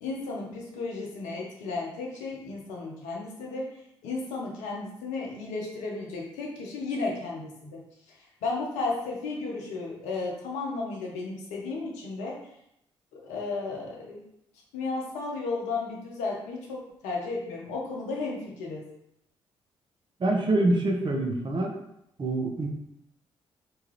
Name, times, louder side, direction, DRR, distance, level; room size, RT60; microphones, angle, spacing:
voice 1, 0.0-3.7 4.0-7.8 8.1-12.4 13.2-14.2 14.7-18.8, left 3 dB, 80° left, -2 dB, 0.7 m, -34 dB
voice 2, 20.2-21.7 22.2-22.7, right 2 dB, 40° right, 1 dB, 0.7 m, -25 dB
2.9 x 2.3 x 3.2 m, 0.79 s
hypercardioid pair, 45°, 12 cm